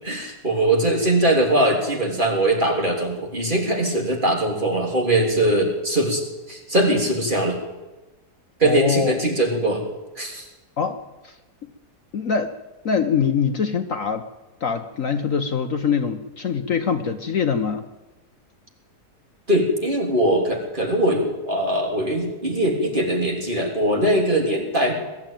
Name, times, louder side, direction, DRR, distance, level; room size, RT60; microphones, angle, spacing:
voice 1, 0.0-7.6 8.6-9.8 10.2-10.4 19.5-24.9, right 1 dB, 30° right, 0 dB, 3.6 m, -21 dB
voice 2, 8.6-9.2 10.8-11.0 11.2-11.4 12.1-12.5 12.8-14.3 14.6-17.8, left 6 dB, 55° left, 7 dB, 1.3 m, -23 dB
22.0 x 13.0 x 9.1 m, 1.1 s
omnidirectional pair, 1.8 m